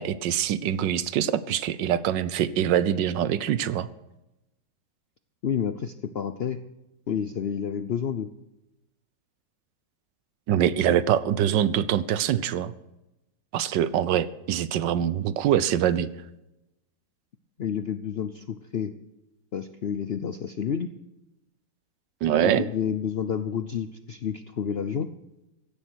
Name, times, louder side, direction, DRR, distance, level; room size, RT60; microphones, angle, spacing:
voice 1, 0.0-3.9 10.5-12.7 13.5-16.1 22.2-22.6, right 10 dB, 85° right, 16 dB, 1.4 m, -24 dB
voice 2, 5.4-6.6 7.1-8.3 10.9-11.0 17.6-18.9 19.5-20.9 22.4-25.1, left 8 dB, 65° left, 10 dB, 0.6 m, -29 dB
16.0 x 11.5 x 6.3 m, 0.94 s
omnidirectional pair, 1.9 m